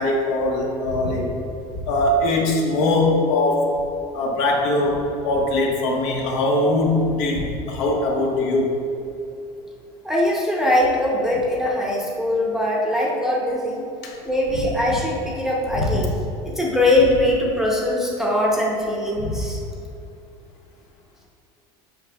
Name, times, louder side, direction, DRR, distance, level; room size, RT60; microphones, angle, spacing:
voice 1, 0.0-1.3 1.9-3.7 4.1-8.8 14.0-14.1 15.8-16.0 19.2-19.3, left 2 dB, 70° left, -1 dB, 1.2 m, -21 dB
voice 2, 10.0-13.8 14.2-16.1 16.4-19.6, left 1 dB, 5° right, -4 dB, 0.7 m, -21 dB
7.7 x 5.7 x 2.3 m, 2.7 s
cardioid pair, 160°, 14 cm